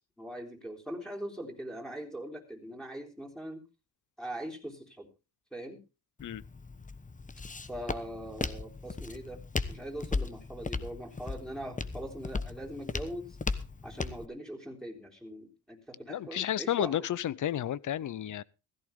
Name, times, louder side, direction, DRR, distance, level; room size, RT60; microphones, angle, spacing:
voice 1, 0.2-3.6 4.2-5.1 5.5-5.8 7.7-9.4 9.7-13.4 13.8-17.0, right 1 dB, ahead, 3.8 m, -41 dB
Walk footsteps, 6.2-14.3, left 4 dB, 20° left, 1.1 m, -37 dB
voice 2, 16.1-18.4, left 11 dB, 50° left, 0.7 m, -32 dB
15.5 x 14.0 x 3.6 m
cardioid pair, 80°, 39 cm